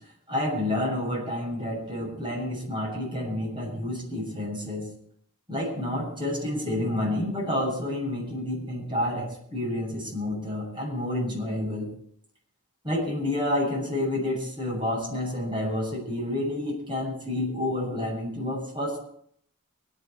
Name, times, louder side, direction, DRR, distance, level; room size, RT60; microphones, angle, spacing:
voice 1, 0.3-4.9 5.5-11.9 12.8-19.0, left 1 dB, 25° right, -3 dB, 7.2 m, -29 dB
25.0 x 9.0 x 4.9 m, 0.65 s
head